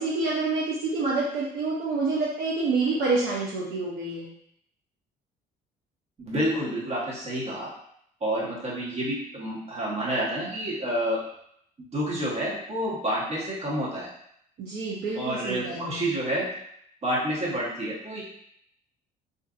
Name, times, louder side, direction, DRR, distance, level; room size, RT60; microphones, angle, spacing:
voice 1, 0.0-4.3 14.6-16.0, right 3 dB, 65° right, -6 dB, 0.6 m, -27 dB
voice 2, 6.2-7.7 8.2-11.2 11.9-14.1 15.1-16.5 17.0-18.2, equal, 40° right, -6 dB, 1.1 m, -29 dB
2.5 x 2.4 x 2.4 m, 0.71 s
cardioid pair, 110°, 17 cm